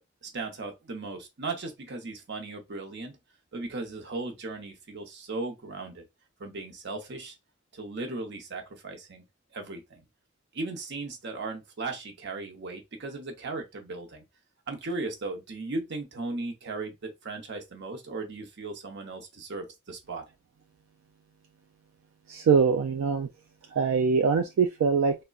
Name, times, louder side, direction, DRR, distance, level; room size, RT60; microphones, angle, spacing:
voice 1, 0.2-3.2 3.5-6.0 6.4-7.3 7.7-9.2 9.5-10.0 10.5-14.2 14.7-20.3, right 3 dB, 55° right, 0.8 m, -37 dB
voice 2, 22.3-23.3 23.7-25.2, right 5 dB, 80° right, 0.3 m, -23 dB
3.6 x 2.1 x 2.3 m
head